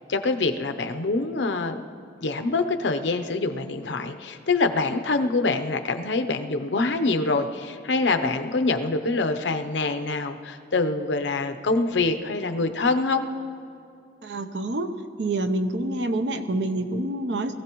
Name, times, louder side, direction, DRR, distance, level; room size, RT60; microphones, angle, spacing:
voice 1, 0.1-1.8 2.2-13.2, left 3 dB, 85° left, 7 dB, 0.7 m, -25 dB
voice 2, 14.2-14.9 15.2-17.5, right 2 dB, 70° right, 8 dB, 0.7 m, -27 dB
22.0 x 15.0 x 3.0 m, 2.5 s
head